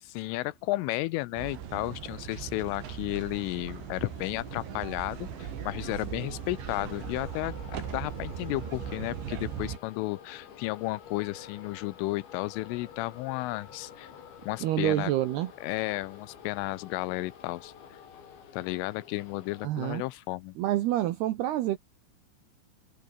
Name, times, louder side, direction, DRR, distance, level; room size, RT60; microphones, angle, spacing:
voice 1, 0.0-7.5 7.9-14.1 14.5-15.1 15.6-17.7 18.5-20.6, left 19 dB, 85° left, 3.2 m, -33 dB
sound 1, 1.4-9.8, right 9 dB, 60° right, 5.2 m, -39 dB
sound 2, 3.4-19.6, left 8 dB, 60° left, 5.7 m, -50 dB
voice 2, 14.6-15.5 19.6-20.0 20.6-21.8, right 14 dB, 80° right, 2.4 m, -28 dB
omnidirectional pair, 6.0 m